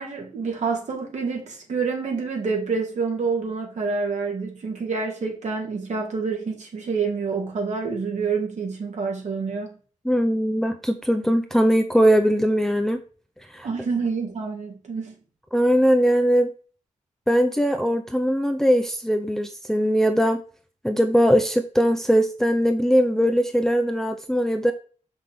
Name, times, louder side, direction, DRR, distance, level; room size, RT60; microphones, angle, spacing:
voice 1, 0.0-9.8 13.6-15.1, right 4 dB, 60° right, 2.3 m, -27 dB
voice 2, 10.0-13.0 13.5-13.7 15.5-16.5 17.3-20.4 20.8-24.7, equal, 5° left, 0.6 m, -20 dB
6.5 x 6.0 x 3.5 m
wide cardioid pair, 160°, 13 cm